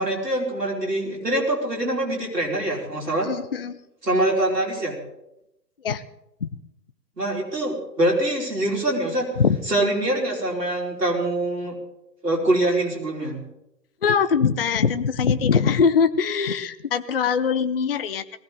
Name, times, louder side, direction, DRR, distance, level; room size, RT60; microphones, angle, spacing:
voice 1, 0.0-3.3 4.0-5.0 7.2-9.3 9.7-11.7 12.2-13.4, right 1 dB, 75° right, -1 dB, 4.9 m, -24 dB
voice 2, 3.2-3.8 5.8-6.0 6.4-6.5 9.4-9.6 14.0-18.2, left 6 dB, 35° left, 12 dB, 0.5 m, -22 dB
19.5 x 16.5 x 3.9 m, 0.84 s
figure-of-eight pair, 125°, 50 cm